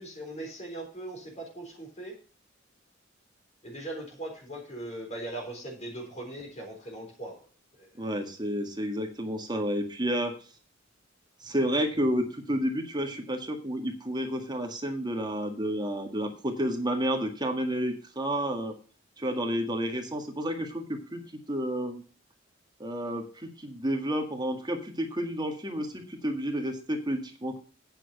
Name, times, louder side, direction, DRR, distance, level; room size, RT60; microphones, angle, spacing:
voice 1, 0.0-2.2 3.6-7.3 7.8-7.9, right 1 dB, 35° left, 0 dB, 3.8 m, -39 dB
voice 2, 8.0-10.3 11.4-18.7 19.2-21.2 21.5-22.0 22.8-27.6, equal, 20° right, 4 dB, 1.8 m, -30 dB
9.1 x 6.8 x 6.5 m, 0.36 s
head